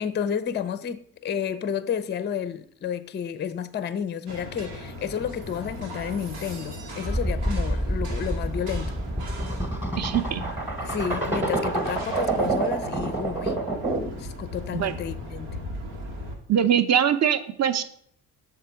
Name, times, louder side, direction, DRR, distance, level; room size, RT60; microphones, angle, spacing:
voice 1, 0.0-8.9 10.8-13.6 14.2-15.6, left 8 dB, 25° left, 0.4 m, -31 dB
sound 1, 4.3-16.4, left 1 dB, 90° right, 1.1 m, -38 dB
sound 2, 7.1-14.2, right 2 dB, 5° right, 1.0 m, -27 dB
voice 2, 10.0-10.4 14.7-14.9 16.5-17.8, right 9 dB, 35° right, 0.6 m, -22 dB
6.6 x 3.7 x 4.4 m
hypercardioid pair, 50°, 48 cm